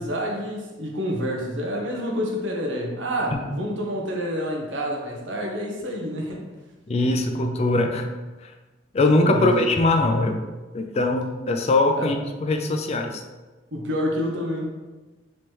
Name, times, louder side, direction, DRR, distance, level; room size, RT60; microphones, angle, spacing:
voice 1, 0.0-6.4 9.2-9.5 12.0-12.1 13.7-14.7, equal, 85° right, 0 dB, 0.9 m, -28 dB
voice 2, 6.9-8.1 8.9-10.4 10.7-13.2, left 2 dB, 35° left, 4 dB, 0.4 m, -21 dB
3.2 x 3.0 x 4.5 m, 1.2 s
head